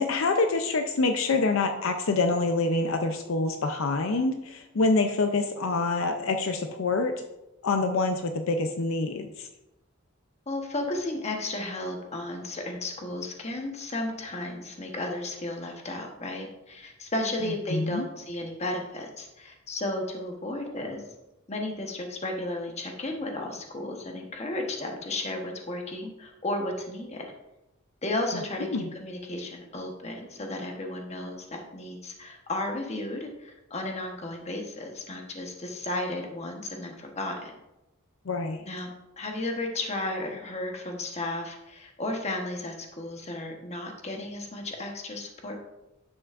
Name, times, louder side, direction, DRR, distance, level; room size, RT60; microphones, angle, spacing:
voice 1, 0.0-7.1 7.6-9.5 17.7-18.1 28.3-28.4 28.7-28.9 38.3-38.6, left 3 dB, 75° left, 7 dB, 0.6 m, -26 dB
voice 2, 10.5-21.0 21.5-27.3 28.0-28.7 29.0-37.5 38.7-38.9 39.2-45.6, left 1 dB, 30° left, 2 dB, 1.1 m, -34 dB
9.9 x 7.0 x 2.5 m, 0.93 s
head